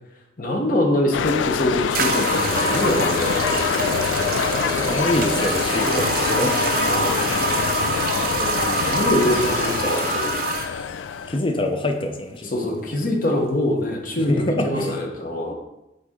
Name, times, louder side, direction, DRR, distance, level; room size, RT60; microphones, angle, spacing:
voice 1, 0.4-5.0 5.8-6.2 6.8-7.4 8.9-10.3 12.4-15.5, left 1 dB, 50° left, 1 dB, 0.9 m, -24 dB
sound 1, 1.1-11.4, left 7 dB, 90° left, 0.3 m, -25 dB
sound 2, 1.1-1.2 1.9-10.7, right 3 dB, 50° right, 0.8 m, -25 dB
voice 2, 4.9-6.6 8.1-9.0 11.3-12.5 14.2-14.9, left 1 dB, 30° left, 5 dB, 0.6 m, -26 dB
7.9 x 4.0 x 3.7 m, 0.92 s
head